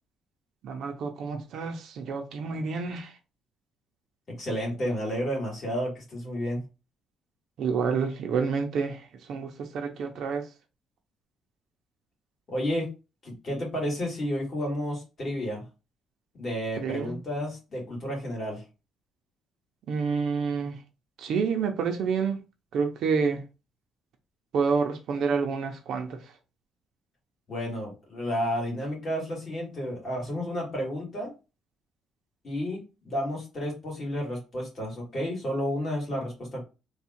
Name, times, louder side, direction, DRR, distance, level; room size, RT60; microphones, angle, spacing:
voice 1, 0.6-3.1 7.6-10.5 16.8-17.2 19.9-20.8 21.2-22.4 22.7-23.4 24.5-26.3, right 5 dB, 60° right, 0.7 m, -28 dB
voice 2, 4.4-6.6 12.5-12.9 13.2-15.6 16.4-18.6 27.5-31.3 32.4-36.6, equal, 35° left, 2.2 m, -31 dB
3.6 x 2.4 x 4.3 m
cardioid pair, 155°, 0 cm